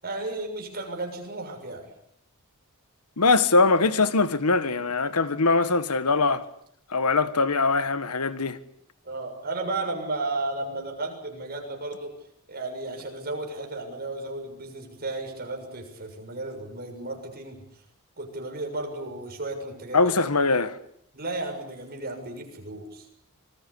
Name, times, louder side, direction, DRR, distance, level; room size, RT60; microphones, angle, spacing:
voice 1, 0.0-1.9 9.0-12.1 12.5-17.6 18.2-20.0 21.1-23.1, right 2 dB, 45° right, 6.9 m, -34 dB
voice 2, 3.2-6.5 6.9-8.6 19.9-20.8, left 3 dB, 85° left, 1.5 m, -22 dB
26.5 x 21.0 x 8.6 m
head